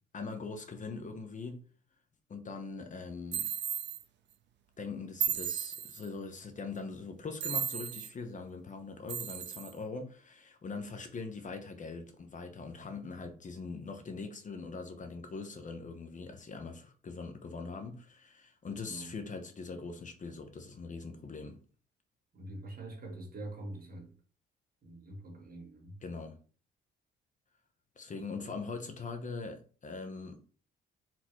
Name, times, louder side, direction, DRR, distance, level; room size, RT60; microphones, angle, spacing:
voice 1, 0.1-1.7 2.3-3.5 4.8-21.6 26.0-26.4 28.0-30.4, left 4 dB, 40° left, 0.9 m, -42 dB
sound 1, 3.3-4.0 5.2-6.1 7.4-8.1 9.1-9.7, right 8 dB, 60° right, 0.6 m, -34 dB
voice 2, 18.8-19.1 22.3-24.1 24.8-26.0 28.1-28.2, right 2 dB, 45° right, 1.7 m, -45 dB
4.3 x 3.8 x 3.0 m
cardioid pair, 90°, 20 cm